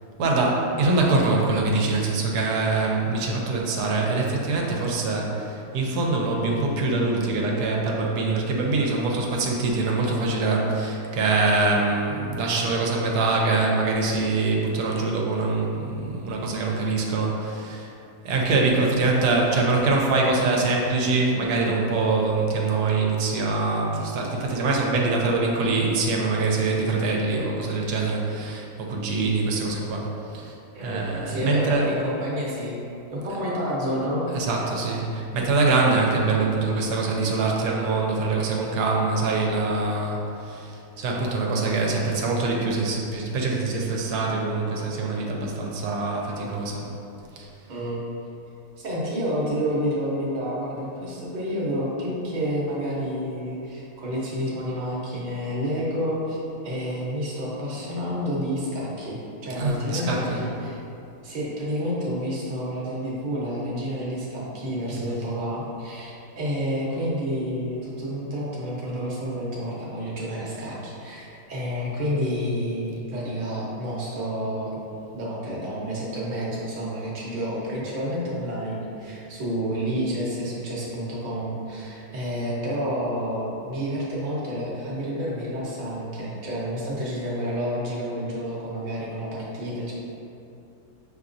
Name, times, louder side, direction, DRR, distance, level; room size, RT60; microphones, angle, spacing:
voice 1, 0.2-17.9 18.2-32.0 33.3-33.4 34.3-46.9 47.4-47.5 59.6-60.4 64.9-65.3, right 3 dB, 90° right, -1 dB, 1.2 m, -24 dB
voice 2, 30.7-32.7 33.1-34.2 47.7-48.0 48.8-56.4 56.6-59.2 59.4-60.8 61.2-74.7 75.1-89.9, equal, 40° right, -6 dB, 0.8 m, -29 dB
5.7 x 2.9 x 2.6 m, 2.8 s
omnidirectional pair, 1.6 m